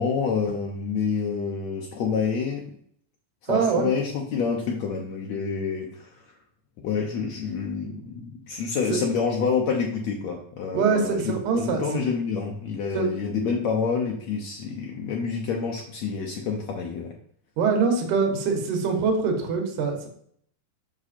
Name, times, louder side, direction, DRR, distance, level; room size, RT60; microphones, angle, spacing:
voice 1, 0.0-2.7 3.5-6.2 6.8-11.2 11.5-17.1, left 5 dB, 65° left, 0 dB, 2.0 m, -28 dB
voice 2, 3.5-3.9 8.5-8.6 10.7-11.8 12.9-13.1 17.6-20.1, right 5 dB, 70° right, 3 dB, 2.8 m, -24 dB
7.9 x 6.2 x 4.3 m, 0.62 s
omnidirectional pair, 3.8 m